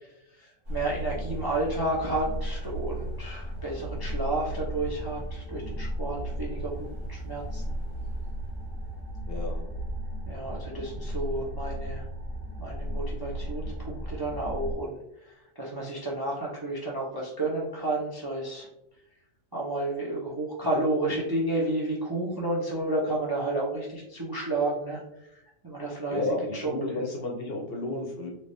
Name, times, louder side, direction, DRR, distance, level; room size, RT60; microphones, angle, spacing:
voice 1, 0.0-6.8 7.0-7.7 10.3-12.1 12.6-18.7 19.5-26.2 26.5-27.1, right 2 dB, 30° right, -4 dB, 0.4 m, -31 dB
sound 1, 0.6-14.7, equal, 60° right, 1.4 m, -35 dB
voice 2, 9.3-9.7 26.1-28.3, left 2 dB, 60° left, 0 dB, 0.7 m, -32 dB
3.2 x 2.9 x 2.6 m, 0.83 s
omnidirectional pair, 1.3 m